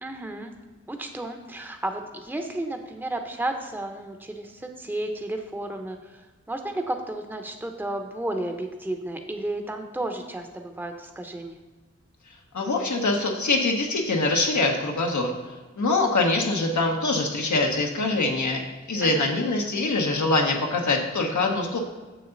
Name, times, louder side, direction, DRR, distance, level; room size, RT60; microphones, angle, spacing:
voice 1, 0.0-0.5 0.9-6.2 6.5-11.6 19.0-19.3, right 1 dB, 5° right, 5 dB, 0.8 m, -32 dB
voice 2, 12.5-15.3 15.8-18.6 18.9-21.8, left 2 dB, 80° left, 1 dB, 1.1 m, -24 dB
6.8 x 6.3 x 3.9 m, 1.2 s
cardioid pair, 45°, 29 cm